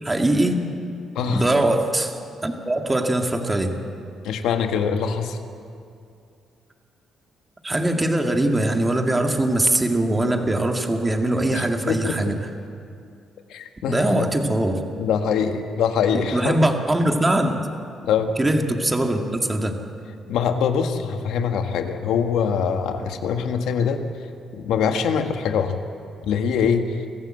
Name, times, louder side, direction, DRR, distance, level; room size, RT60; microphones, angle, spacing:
voice 1, 0.0-0.6 1.3-2.2 2.4-3.8 7.6-12.4 13.9-14.8 16.3-17.6 18.4-19.8, right 1 dB, 15° right, 3 dB, 2.2 m, -21 dB
voice 2, 1.1-1.5 4.2-5.4 11.5-12.3 13.5-14.3 15.0-16.6 18.0-18.3 20.3-24.0 24.5-25.8 26.2-27.0, left 6 dB, 85° left, 6 dB, 1.6 m, -23 dB
24.0 x 15.0 x 7.8 m, 2.5 s
cardioid pair, 90°, 0 cm